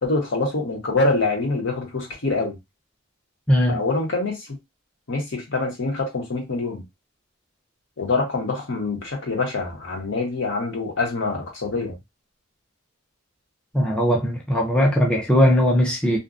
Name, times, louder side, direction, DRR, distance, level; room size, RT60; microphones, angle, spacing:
voice 1, 0.0-2.6 3.7-4.5 5.1-6.8 8.0-11.9, left 3 dB, 65° left, 1.0 m, -25 dB
voice 2, 3.5-3.8 13.7-16.2, equal, 5° left, 0.5 m, -19 dB
2.6 x 2.2 x 2.5 m
head